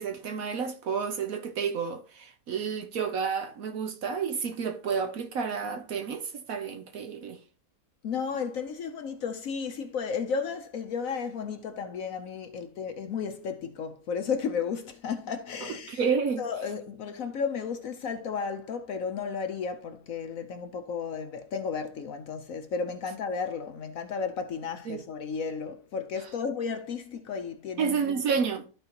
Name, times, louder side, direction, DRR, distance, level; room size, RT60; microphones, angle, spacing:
voice 1, 0.0-7.4 15.9-16.4 24.9-25.0 27.8-28.7, right 6 dB, 65° right, 1.0 m, -30 dB
voice 2, 8.0-16.0 16.4-28.2, left 6 dB, 65° left, 0.9 m, -33 dB
13.0 x 4.4 x 2.9 m
omnidirectional pair, 1.8 m